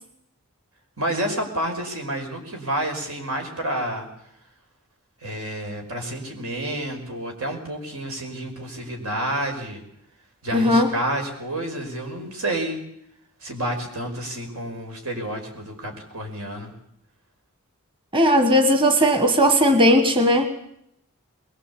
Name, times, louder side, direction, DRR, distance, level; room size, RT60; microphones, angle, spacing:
voice 1, 1.0-4.1 5.2-9.8 10.4-12.8 13.4-16.7, right 1 dB, 90° right, 4 dB, 5.6 m, -29 dB
voice 2, 10.5-10.9 18.1-20.5, equal, 25° right, 8 dB, 1.5 m, -17 dB
22.0 x 21.5 x 8.5 m, 0.74 s
head